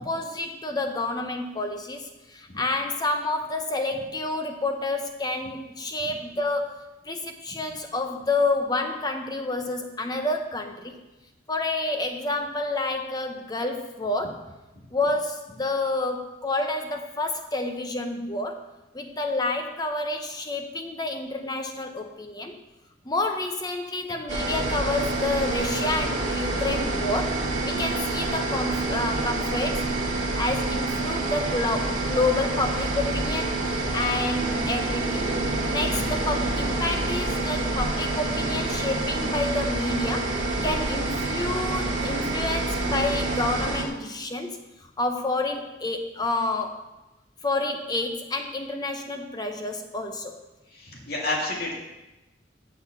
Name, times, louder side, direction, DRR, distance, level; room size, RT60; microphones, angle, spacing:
voice 1, 0.0-6.8 7.0-11.0 11.5-14.5 14.9-18.6 18.9-22.6 23.0-29.8 30.2-35.4 35.7-40.4 40.6-44.5 44.8-46.8 47.4-50.4, left 2 dB, 20° left, 5 dB, 0.7 m, -29 dB
sound 1, 24.3-43.8, right 2 dB, 45° right, 1.8 m, -27 dB
voice 2, 50.7-51.7, left 2 dB, 60° left, -1 dB, 2.3 m, -29 dB
7.5 x 7.0 x 6.6 m, 1.0 s
head